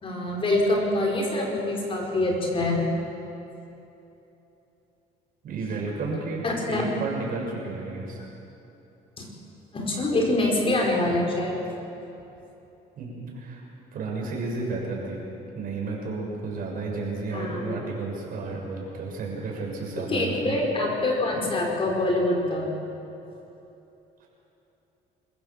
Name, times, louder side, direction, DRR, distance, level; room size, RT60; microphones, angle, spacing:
voice 1, 0.0-2.9 6.4-6.8 9.2-9.3 9.7-11.6 17.3-17.8 20.0-22.7, left 2 dB, 35° left, -1 dB, 4.9 m, -25 dB
voice 2, 5.4-8.2 13.0-13.6 13.9-15.2 15.6-20.6 24.2-24.3, right 3 dB, 60° right, -2 dB, 6.7 m, -32 dB
26.0 x 15.5 x 7.4 m, 3.0 s
cardioid pair, 110°, 17 cm